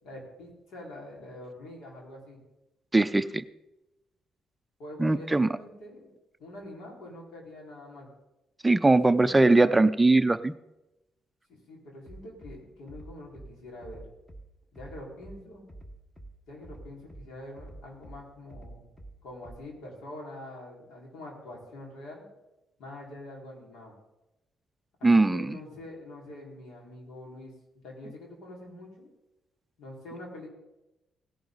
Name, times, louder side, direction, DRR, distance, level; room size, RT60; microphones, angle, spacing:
voice 1, 0.0-2.4 4.8-6.1 6.4-8.1 9.0-9.8 11.5-14.0 14.7-15.6 16.5-18.9 19.2-22.3 22.8-23.9 25.0-29.1 29.8-30.5, left 1 dB, 80° left, -2 dB, 4.6 m, -45 dB
voice 2, 2.9-3.4 5.0-5.5 8.6-10.5 25.0-25.6, right 2 dB, 15° right, 12 dB, 0.5 m, -21 dB
Bass drum, 12.1-12.5 12.9-13.5 13.8-14.4 14.8-15.4 15.7-16.3 16.6-17.2 17.6-18.2 18.5-19.1 19.4-19.5, right 1 dB, 10° left, 1.4 m, -46 dB
17.5 x 11.0 x 4.0 m, 0.95 s
cardioid pair, 90°, 0 cm